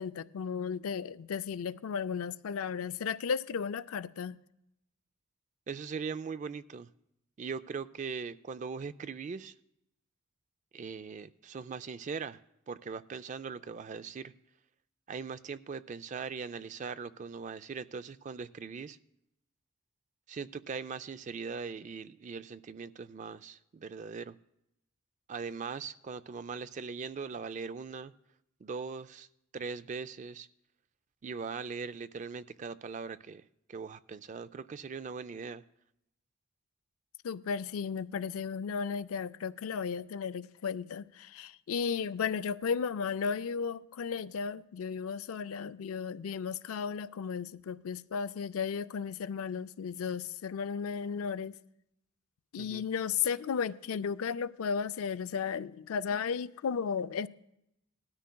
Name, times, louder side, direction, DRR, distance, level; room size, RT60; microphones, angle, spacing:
voice 1, 0.0-4.4 37.2-51.5 52.5-57.3, left 6 dB, 80° left, 0.4 m, -34 dB
voice 2, 5.7-6.9 7.4-9.5 10.7-12.4 12.7-14.3 15.1-19.0 20.3-24.4 25.3-28.1 28.6-29.3 29.5-30.5 31.2-33.4 33.7-35.6 52.6-52.8, right 5 dB, 35° right, 0.3 m, -40 dB
18.5 x 13.0 x 2.3 m
head